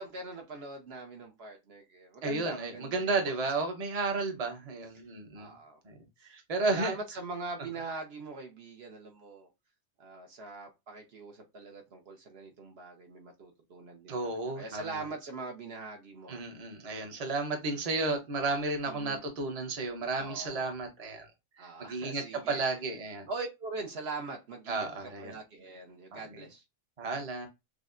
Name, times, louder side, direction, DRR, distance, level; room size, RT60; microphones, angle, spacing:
voice 1, 0.0-3.4 4.1-4.4 5.4-5.8 6.2-6.3 6.7-9.5 10.0-16.4 18.9-19.2 20.2-20.7 21.6-22.6 23.3-26.6, right 3 dB, 65° right, 0.9 m, -42 dB
voice 2, 2.2-5.5 5.8-5.9 6.3-6.9 14.1-14.9 16.3-21.3 21.6-23.3 24.7-25.3 26.1-26.2 27.0-27.5, right 3 dB, 35° right, 0.8 m, -33 dB
6.2 x 2.1 x 2.5 m
omnidirectional pair, 1.2 m